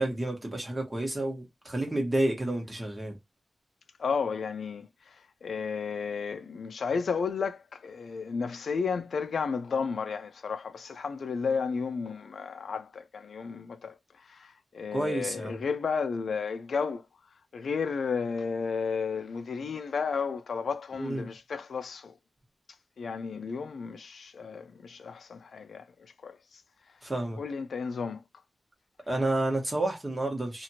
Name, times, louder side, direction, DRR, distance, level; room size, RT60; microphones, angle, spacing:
voice 1, 0.0-3.1 14.9-15.6 21.0-21.3 27.0-27.4 29.1-30.6, right 1 dB, 20° right, 1.1 m, -30 dB
voice 2, 4.0-4.9 5.4-14.0 14.3-17.0 17.5-22.1 23.0-25.9 26.2-26.4 27.4-28.2, left 5 dB, 75° left, 0.3 m, -32 dB
2.8 x 2.5 x 2.8 m
wide cardioid pair, 160°, 0 cm